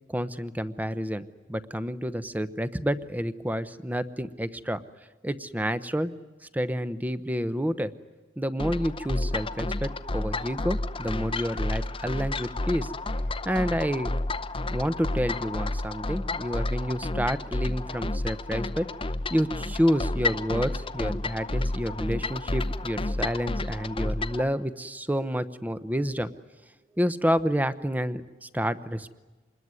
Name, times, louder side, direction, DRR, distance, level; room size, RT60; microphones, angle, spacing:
voice 1, 0.1-4.8 5.2-6.1 6.5-7.9 8.4-12.9 13.4-14.1 14.7-18.9 19.3-26.3 27.0-29.1, equal, 10° right, 13 dB, 0.8 m, -29 dB
sound 1, 8.6-24.4, left 2 dB, 30° left, 0.8 m, -31 dB
26.5 x 21.0 x 9.6 m, 1.2 s
head